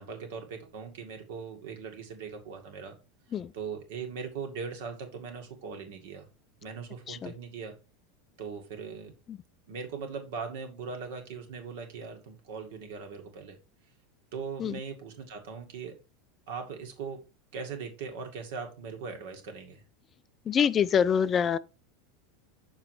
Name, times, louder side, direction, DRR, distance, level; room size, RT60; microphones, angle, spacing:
voice 1, 0.0-2.9 3.5-6.3 6.6-7.7 8.4-9.1 9.7-13.6 14.3-16.0 16.5-17.2 17.5-19.8, right 5 dB, 60° right, 2.0 m, -40 dB
voice 2, 20.5-21.6, left 7 dB, 30° left, 0.4 m, -25 dB
6.7 x 4.9 x 4.8 m
figure-of-eight pair, 85°, 0 cm